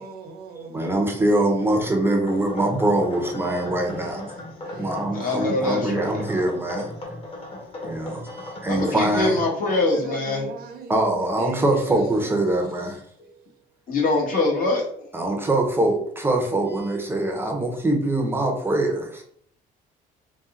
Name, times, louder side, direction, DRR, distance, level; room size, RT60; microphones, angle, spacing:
voice 1, 0.0-1.1 3.7-6.4 9.7-12.5, right 3 dB, 65° right, 4 dB, 0.9 m, -39 dB
voice 2, 0.5-4.3 4.6-7.1 7.8-9.4 10.9-13.0 15.1-19.2, right 1 dB, 15° right, 2 dB, 0.8 m, -23 dB
sound 1, 2.3-9.2, left 1 dB, 35° left, 1.4 m, -37 dB
voice 3, 5.1-6.2 8.7-10.5 13.9-15.1, left 2 dB, 55° left, -1 dB, 1.5 m, -24 dB
4.1 x 2.3 x 3.7 m, 0.64 s
cardioid pair, 110°, 17 cm